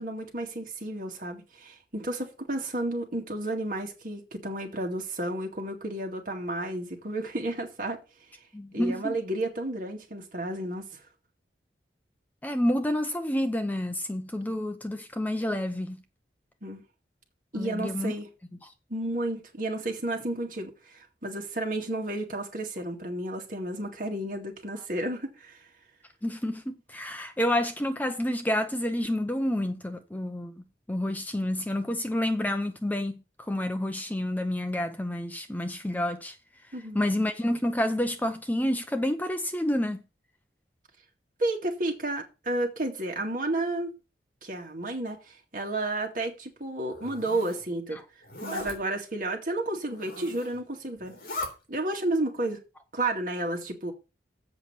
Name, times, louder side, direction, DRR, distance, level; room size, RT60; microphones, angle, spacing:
voice 1, 0.0-8.0 8.7-11.0 16.6-16.8 17.5-18.3 18.9-25.6 36.7-37.0 41.4-43.9 44.4-48.0 48.4-51.2 51.7-52.6 52.9-53.9, right 1 dB, 50° right, 2.2 m, -32 dB
voice 2, 8.5-9.2 12.4-16.0 17.5-18.1 18.6-18.7 26.2-36.4 36.9-40.0 47.9-48.0, left 1 dB, 10° left, 0.7 m, -29 dB
Zipper (clothing), 46.8-47.6 48.2-48.8 49.9-50.6 51.0-51.5, left 1 dB, 55° left, 3.4 m, -38 dB
7.9 x 5.8 x 7.1 m
head